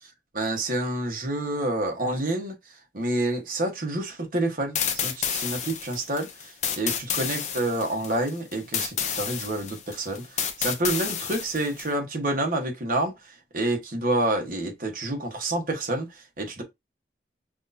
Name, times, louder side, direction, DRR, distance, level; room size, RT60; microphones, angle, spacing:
voice 1, 0.0-16.6, right 1 dB, 50° right, 1.2 m, -28 dB
sound 1, 4.7-11.9, left 7 dB, 40° left, 0.6 m, -30 dB
6.2 x 2.5 x 2.6 m
head